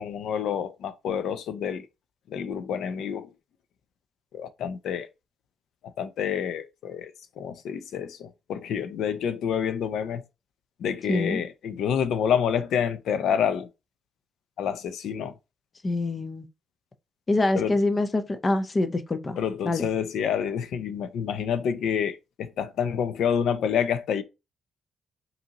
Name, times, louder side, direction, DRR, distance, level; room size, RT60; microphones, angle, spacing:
voice 1, 0.0-1.9 2.3-3.3 4.3-5.1 6.0-10.2 10.8-13.7 14.6-15.3 17.5-17.8 19.4-24.2, left 8 dB, 70° left, 0.5 m, -28 dB
voice 2, 11.1-11.4 15.8-16.5 17.3-19.4 19.6-19.9, left 2 dB, 25° left, 0.5 m, -25 dB
5.2 x 2.7 x 2.8 m
cardioid pair, 135°, 0 cm